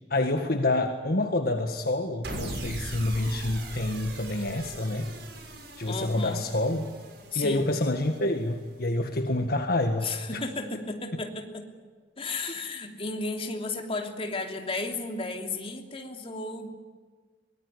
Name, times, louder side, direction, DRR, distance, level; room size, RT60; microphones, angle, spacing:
voice 1, 0.1-5.1 5.8-6.9 7.3-10.4, left 2 dB, 55° left, 5 dB, 1.7 m, -27 dB
sound 1, 2.2-8.6, right 2 dB, 65° right, 6.1 m, -40 dB
voice 2, 5.8-6.5 7.3-7.7 10.0-11.7 12.2-16.7, left 3 dB, 30° left, 3 dB, 3.0 m, -34 dB
24.0 x 20.5 x 9.9 m, 1.4 s
head